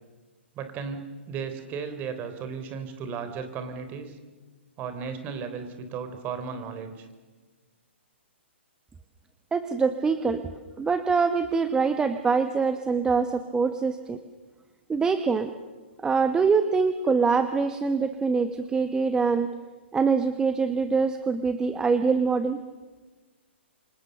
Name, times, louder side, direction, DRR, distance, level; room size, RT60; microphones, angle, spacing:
voice 1, 0.6-4.2 4.8-7.1, right 6 dB, 25° right, 9 dB, 3.7 m, -35 dB
voice 2, 9.5-10.4 10.8-14.2 14.9-15.5 16.0-19.5 19.9-22.6, right 5 dB, 10° right, 9 dB, 1.2 m, -24 dB
28.0 x 26.0 x 6.9 m, 1.3 s
figure-of-eight pair, 125°, 7 cm